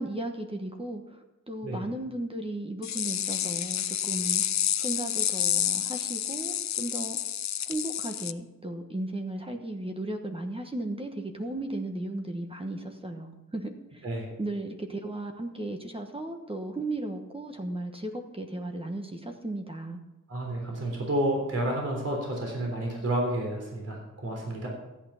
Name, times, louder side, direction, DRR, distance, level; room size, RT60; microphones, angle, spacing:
voice 1, 0.0-4.4 4.8-7.2 7.7-14.1 14.4-20.0, right 1 dB, 15° right, 4 dB, 1.2 m, -35 dB
sound 1, 2.8-8.3, left 10 dB, 55° left, 0.5 m, -29 dB
voice 2, 20.3-24.7, right 1 dB, 45° right, 0 dB, 3.6 m, -30 dB
14.0 x 8.8 x 5.7 m, 1.0 s
wide cardioid pair, 105°, 33 cm